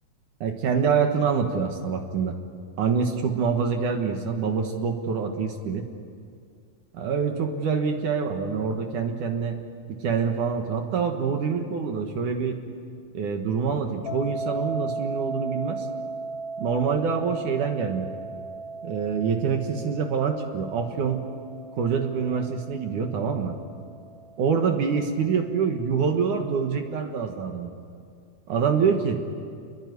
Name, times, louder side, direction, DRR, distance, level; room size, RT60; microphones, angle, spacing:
voice 1, 0.4-2.4 2.8-5.9 6.9-9.5 9.9-12.6 13.1-15.9 16.6-18.1 18.8-21.2 21.8-23.6 24.4-27.7 28.5-29.2, right 6 dB, 60° right, 4 dB, 2.2 m, -26 dB
sound 1, 14.1-25.0, right 3 dB, 70° left, 1.7 m, -36 dB
28.0 x 22.0 x 9.6 m, 2.3 s
omnidirectional pair, 5.5 m